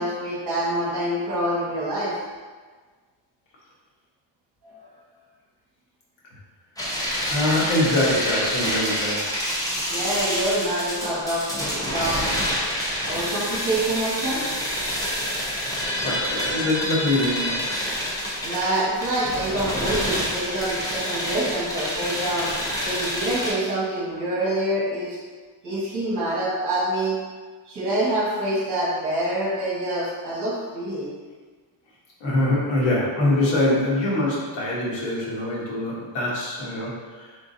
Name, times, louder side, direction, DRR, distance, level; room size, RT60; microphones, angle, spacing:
voice 1, 0.0-2.2 4.6-4.9 9.9-12.3 13.0-14.5 18.4-22.5 22.8-25.2 25.6-27.2 27.7-31.1, right 1 dB, 40° right, -8 dB, 1.4 m, -26 dB
sound 1, 6.8-23.5, equal, 10° left, 0.7 m, -27 dB
voice 2, 7.3-9.4 15.6-15.8 16.0-17.6 32.2-37.4, left 1 dB, 75° left, -6 dB, 1.4 m, -24 dB
3.8 x 3.6 x 2.7 m, 1.4 s
cardioid pair, 160°, 45 cm